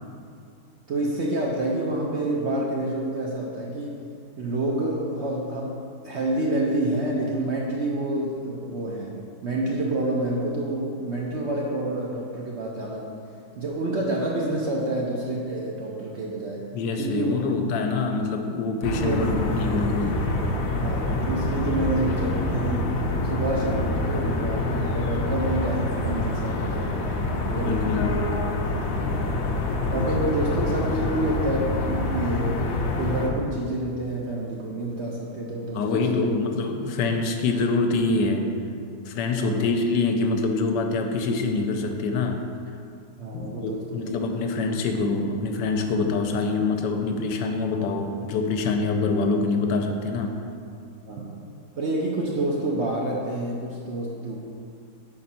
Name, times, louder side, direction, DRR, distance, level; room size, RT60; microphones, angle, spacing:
voice 1, 0.9-4.0 4.4-5.8 6.0-9.1 9.4-13.1 13.6-16.7 17.0-17.4 19.0-19.2 20.8-22.9 23.2-28.2 28.9-29.2 29.9-32.6 33.0-36.4 39.4-39.7 43.2-44.5 51.1-51.4 51.8-54.4, right 1 dB, 60° right, -3 dB, 0.7 m, -28 dB
voice 2, 16.7-20.2 27.6-28.1 35.7-38.5 39.1-42.4 43.3-50.4, left 3 dB, 90° left, 4 dB, 1.2 m, -25 dB
sound 1, 18.8-33.3, left 2 dB, 65° left, 1.0 m, -26 dB
5.1 x 4.4 x 5.7 m, 2.4 s
omnidirectional pair, 1.8 m